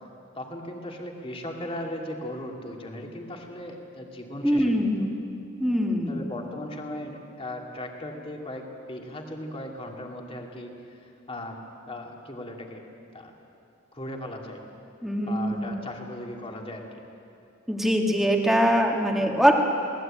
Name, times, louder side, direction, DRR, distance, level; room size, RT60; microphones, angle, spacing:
voice 1, 0.3-4.9 6.1-11.6 11.9-12.8 13.1-13.4 13.9-14.6 15.3-17.0, left 1 dB, 25° left, 1 dB, 2.6 m, -37 dB
voice 2, 4.4-5.1 5.6-6.3 15.0-15.7 17.7-19.5, equal, ahead, 1 dB, 2.0 m, -23 dB
22.0 x 19.0 x 8.9 m, 2.7 s
head